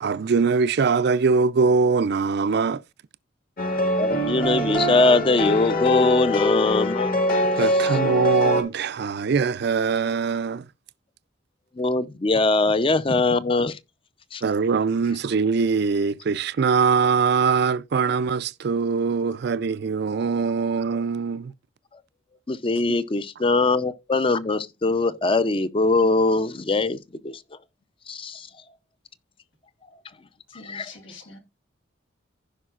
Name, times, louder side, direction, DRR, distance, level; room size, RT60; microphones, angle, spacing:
voice 1, 0.0-2.8 7.6-10.6 14.4-21.5, right 5 dB, 60° right, 0.4 m, -22 dB
sound 1, 3.6-8.6, left 1 dB, 50° left, 1.8 m, -23 dB
voice 2, 4.0-7.1 7.7-8.0 11.8-13.8 14.3-14.4 22.5-27.0 27.2-27.4 28.1-28.5 30.6-30.9, left 3 dB, 30° left, 0.5 m, -22 dB
voice 3, 30.5-31.4, left 3 dB, 85° left, 2.1 m, -44 dB
15.5 x 5.4 x 2.4 m
head